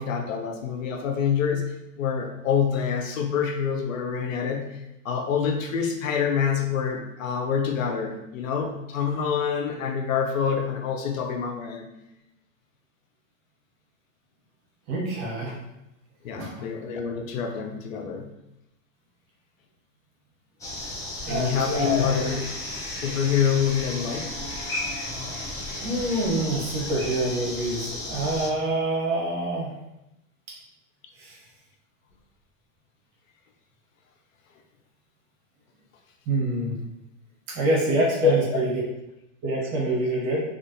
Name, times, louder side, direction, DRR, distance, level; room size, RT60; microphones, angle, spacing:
voice 1, 0.0-1.6 2.0-11.9 16.2-18.3 21.3-22.5 23.0-24.4 38.2-38.3, left 7 dB, 75° left, 4 dB, 0.6 m, -26 dB
voice 2, 14.9-15.5 16.3-16.5 21.2-22.0 25.7-29.7 31.2-31.4 36.3-36.8 37.5-38.7 39.4-40.4, right 1 dB, 45° right, -3 dB, 1.0 m, -26 dB
sound 1, 20.6-28.5, left 1 dB, 10° left, 0.6 m, -34 dB
2.5 x 2.4 x 2.6 m, 0.88 s
hypercardioid pair, 100°, 40 cm